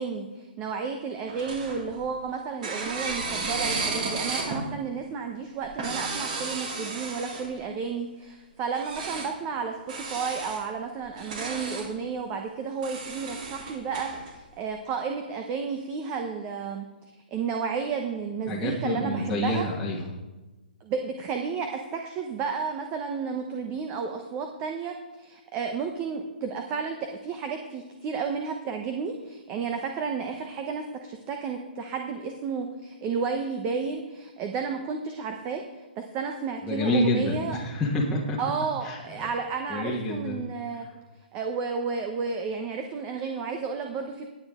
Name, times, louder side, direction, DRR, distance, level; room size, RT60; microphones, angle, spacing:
voice 1, 0.0-14.3 14.6-16.9 17.3-19.7 20.8-35.6 36.0-37.6 38.4-40.9 41.3-44.3, right 5 dB, 25° right, 5 dB, 1.0 m, -32 dB
sound 1, 1.3-2.2 2.6-4.7 5.6-7.6 8.7-9.3 9.9-10.6 11.1-11.9 12.8-14.3, right 3 dB, 50° right, 3.1 m, -33 dB
voice 2, 18.5-20.1 36.6-38.4 38.8-39.3 39.7-40.5, left 1 dB, 5° left, -7 dB, 1.5 m, -27 dB
17.5 x 9.0 x 3.7 m, 1.1 s
hypercardioid pair, 145°, 6 cm